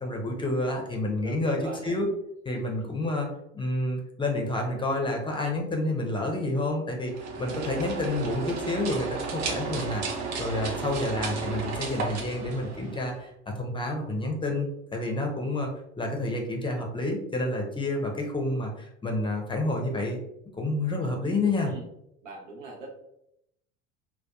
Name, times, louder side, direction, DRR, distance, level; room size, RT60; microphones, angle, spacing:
voice 1, 0.0-2.1 2.5-3.3 3.5-7.1 7.4-10.0 10.4-15.7 16.0-20.2 20.6-21.7, left 2 dB, 15° left, 1 dB, 0.5 m, -29 dB
voice 2, 1.2-1.9 21.6-21.8 22.2-22.9, right 2 dB, 85° right, -1 dB, 0.8 m, -41 dB
sound 1, 7.0-13.2, right 4 dB, 50° right, 0.6 m, -33 dB
2.7 x 2.1 x 2.3 m, 0.78 s
hypercardioid pair, 75°, 36 cm